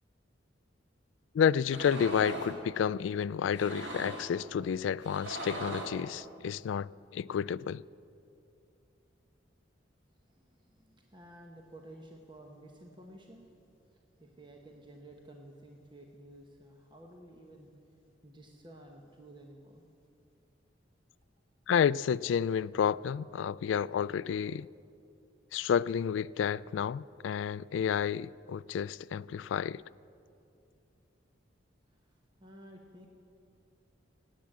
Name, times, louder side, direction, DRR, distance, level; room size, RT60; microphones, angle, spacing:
voice 1, 1.3-7.8 21.7-24.7 25.5-29.8, left 7 dB, 75° left, 0.3 m, -30 dB
sound 1, 1.6-2.6 3.5-4.3 5.0-6.0, right 1 dB, 70° right, 2.3 m, -40 dB
voice 2, 10.3-13.5 13.9-17.7 18.2-19.8 31.9-33.1, right 1 dB, 25° right, 1.1 m, -53 dB
17.0 x 9.4 x 7.5 m
head